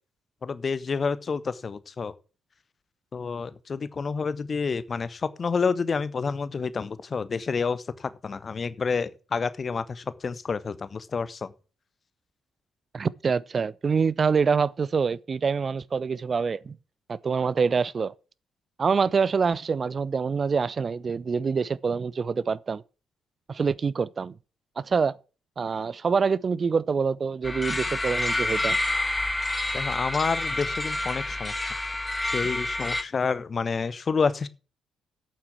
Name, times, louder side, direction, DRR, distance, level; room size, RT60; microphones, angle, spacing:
voice 1, 0.4-2.1 3.1-11.5 29.7-31.7 32.3-34.5, left 5 dB, 40° left, 1.0 m, -29 dB
voice 2, 12.9-16.8 17.1-18.1 18.8-22.8 23.5-24.3 24.8-25.2 25.6-28.8, right 5 dB, 40° right, 0.5 m, -25 dB
sound 1, 27.4-33.0, left 2 dB, 15° left, 1.5 m, -28 dB
8.6 x 7.5 x 8.5 m
figure-of-eight pair, 40°, 0 cm